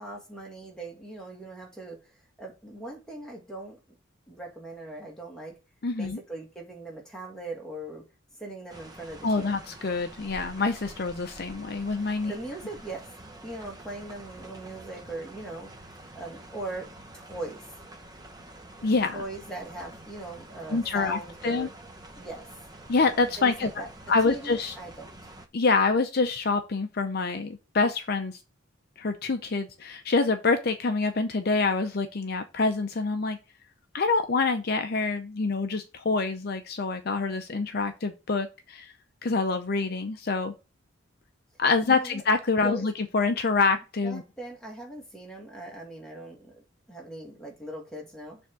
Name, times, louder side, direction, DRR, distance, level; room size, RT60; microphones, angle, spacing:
voice 1, 0.0-2.1 2.4-3.8 4.3-5.6 6.0-8.0 8.4-9.6 12.3-13.1 13.4-15.7 16.1-17.6 19.1-21.7 22.1-22.5 23.4-23.9 24.3-25.1 41.8-42.2 42.6-42.9 44.0-48.4, right 1 dB, 5° left, -1 dB, 1.9 m, -40 dB
voice 2, 5.8-6.2 9.2-12.3 18.8-19.2 20.7-21.7 22.9-23.7 24.1-24.7 25.5-28.4 29.0-33.4 33.9-38.9 39.2-40.5 41.6-44.2, left 4 dB, 50° left, 8 dB, 0.5 m, -26 dB
sound 1, 8.7-25.5, right 1 dB, 20° right, 0.8 m, -47 dB
7.0 x 3.5 x 6.2 m, 0.29 s
head